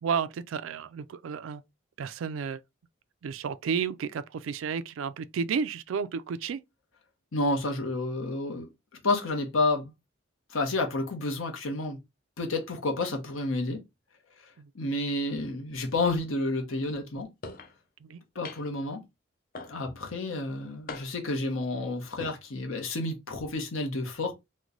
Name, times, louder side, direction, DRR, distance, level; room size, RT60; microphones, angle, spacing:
voice 1, 0.0-1.6 2.0-2.6 3.2-6.6 14.6-14.7 18.0-18.2, right 6 dB, 70° right, 0.3 m, -32 dB
voice 2, 7.3-8.7 9.0-9.9 10.5-12.0 12.4-13.8 14.4-17.3 18.3-19.0 19.7-24.3, left 2 dB, 75° left, 0.9 m, -30 dB
sound 1, 17.4-17.7 18.4-18.8 19.5-20.0 20.9-21.4 22.0-22.4, left 3 dB, 40° left, 0.5 m, -41 dB
3.1 x 2.1 x 3.8 m
head